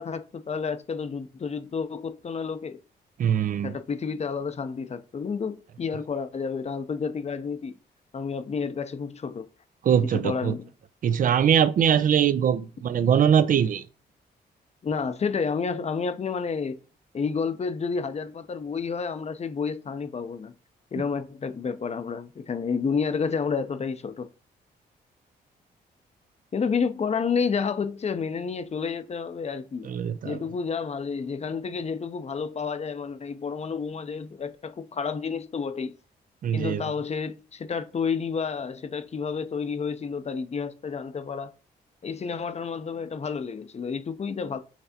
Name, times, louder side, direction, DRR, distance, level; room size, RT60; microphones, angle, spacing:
voice 1, 0.0-2.8 3.6-7.7 8.1-9.5 10.1-10.7 14.8-16.8 17.1-20.5 20.9-24.3 26.5-29.9 30.2-35.9 36.5-41.5 42.0-44.6, left 5 dB, 40° left, 0.6 m, -30 dB
voice 2, 3.2-3.7 9.8-10.5 11.0-13.8 29.8-30.4 36.4-36.9, right 8 dB, 50° right, 0.4 m, -22 dB
5.8 x 3.3 x 2.8 m
cardioid pair, 75°, 18 cm